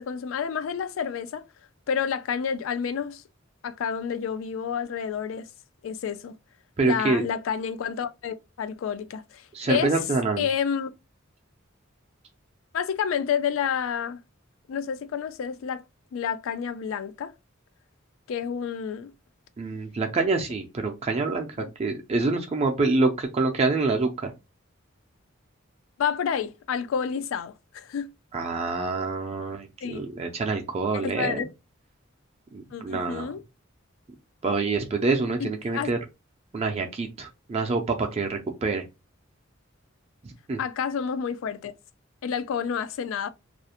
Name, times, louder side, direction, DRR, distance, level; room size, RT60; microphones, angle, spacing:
voice 1, 0.0-1.4 1.9-3.2 3.6-5.5 5.8-6.3 6.8-9.9 10.4-10.9 12.7-14.2 14.7-15.8 16.1-17.3 18.3-19.1 21.6-21.7 26.0-28.1 29.8-30.0 30.9-31.5 32.7-33.4 35.4-35.9 40.6-41.7 42.2-43.3, left 7 dB, 75° left, 0.3 m, -29 dB
voice 2, 6.8-7.3 9.5-10.5 19.6-24.3 28.3-31.4 32.5-33.3 34.4-36.0 36.5-38.8 40.2-40.6, right 3 dB, 30° right, 0.3 m, -26 dB
2.4 x 2.0 x 2.8 m
head